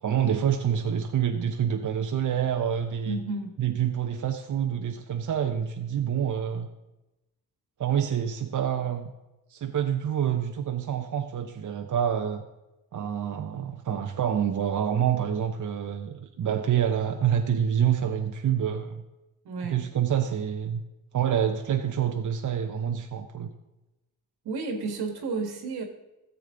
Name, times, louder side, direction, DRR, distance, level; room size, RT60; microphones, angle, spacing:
voice 1, 0.0-3.2 3.6-6.7 7.8-9.1 9.5-12.4 12.9-19.0 19.6-20.8 21.1-23.5, right 9 dB, 50° right, 4 dB, 0.8 m, -27 dB
voice 2, 3.1-3.5 19.4-19.9 24.4-25.8, right 3 dB, 80° right, 4 dB, 1.8 m, -32 dB
14.0 x 7.4 x 3.8 m, 1.0 s
cardioid pair, 75°, 39 cm